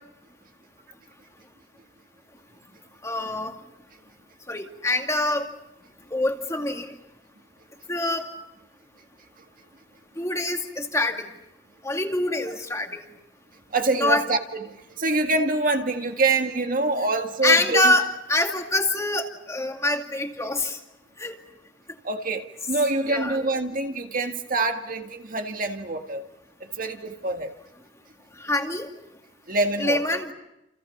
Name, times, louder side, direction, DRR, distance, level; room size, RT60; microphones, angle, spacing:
voice 1, 3.0-3.5 4.5-5.5 6.1-6.9 7.9-8.3 10.2-11.3 11.8-13.0 14.0-14.2 17.4-20.8 21.2-21.4 23.1-23.4 28.4-28.9 29.8-30.3, left 2 dB, 15° left, 3 dB, 2.3 m, -25 dB
voice 2, 13.7-18.0 22.0-26.2 26.8-27.5 29.5-30.2, right 2 dB, 50° right, 4 dB, 1.9 m, -25 dB
29.0 x 29.0 x 5.9 m, 0.89 s
head